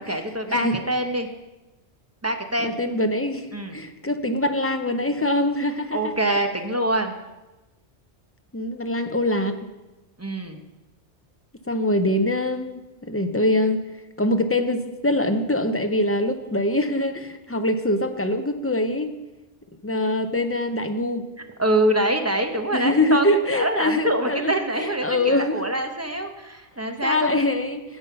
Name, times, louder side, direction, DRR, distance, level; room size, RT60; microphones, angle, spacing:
voice 1, 0.1-1.3 2.2-2.8 3.5-3.8 5.9-7.1 10.2-10.6 21.6-27.5, right 1 dB, 15° right, 5 dB, 0.8 m, -25 dB
voice 2, 2.6-3.5 3.7-6.1 8.5-9.7 11.7-13.8 14.2-19.1 19.8-21.2 22.7-25.6 27.0-27.8, left 1 dB, 15° left, 7 dB, 0.5 m, -23 dB
16.0 x 5.6 x 5.6 m, 1.1 s
omnidirectional pair, 1.2 m